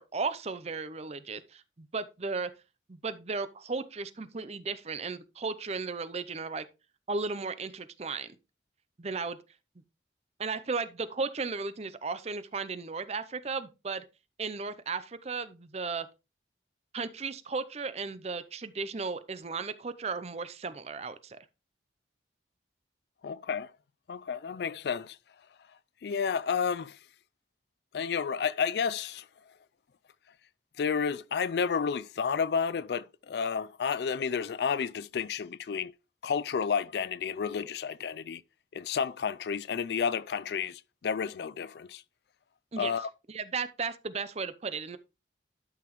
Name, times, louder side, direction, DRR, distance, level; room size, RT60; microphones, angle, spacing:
voice 1, 0.0-2.5 2.9-6.6 7.1-8.3 9.0-9.4 10.4-14.0 14.4-16.1 16.9-21.4 42.7-42.9 43.3-45.0, right 4 dB, 35° right, 0.6 m, -35 dB
voice 2, 23.2-23.7 24.1-25.2 26.0-27.0 27.9-29.2 30.8-35.9 36.2-38.4 38.7-42.0 42.8-43.1, left 6 dB, 65° left, 0.4 m, -31 dB
12.0 x 5.9 x 3.0 m
head